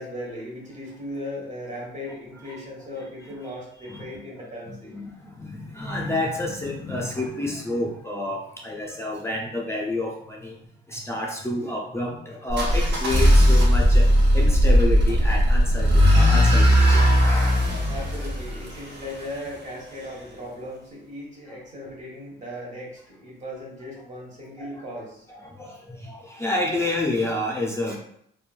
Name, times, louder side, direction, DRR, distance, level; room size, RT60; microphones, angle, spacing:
voice 1, 0.0-5.0 17.9-25.3, left 1 dB, 35° right, -3 dB, 1.3 m, -37 dB
voice 2, 4.6-10.5 10.9-14.1 14.3-17.6 24.6-24.8 25.3-28.0, left 2 dB, 15° left, -2 dB, 0.4 m, -29 dB
sound 1, 12.5-19.4, equal, 60° right, 0.8 m, -18 dB
3.0 x 2.2 x 2.4 m, 0.70 s
cardioid pair, 90°, 20 cm